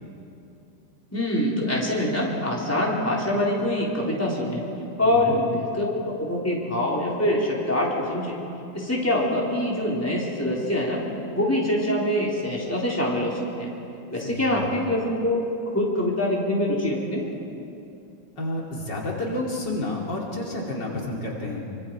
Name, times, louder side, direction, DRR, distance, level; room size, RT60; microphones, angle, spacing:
voice 1, 1.1-4.7 5.0-8.4 8.7-11.1 11.3-13.7 14.1-17.3, left 1 dB, 5° left, -4 dB, 3.9 m, -24 dB
voice 2, 5.0-5.4 14.2-14.6 18.4-21.6, left 2 dB, 65° left, -2 dB, 3.3 m, -30 dB
27.0 x 25.0 x 4.8 m, 2.7 s
omnidirectional pair, 2.1 m